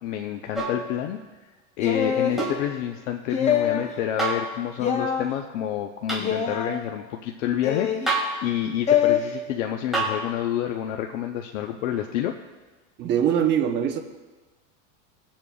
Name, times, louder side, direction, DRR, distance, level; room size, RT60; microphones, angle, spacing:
voice 1, 0.0-1.2 1.8-12.3, left 10 dB, 75° left, 4 dB, 0.7 m, -28 dB
sound 1, 0.5-0.9 2.4-2.7 4.2-4.5 6.1-6.3 8.1-8.4 9.9-10.2 12.0-12.1, right 2 dB, ahead, 1.9 m, -26 dB
sound 2, 1.8-2.4 3.3-3.9 4.8-5.2 6.2-6.7 7.6-8.1 8.9-9.2, left 8 dB, 20° left, 0.7 m, -23 dB
voice 2, 13.0-14.0, right 9 dB, 30° right, 4 dB, 0.8 m, -22 dB
21.0 x 7.4 x 2.3 m, 1.3 s
supercardioid pair, 160°, 37 cm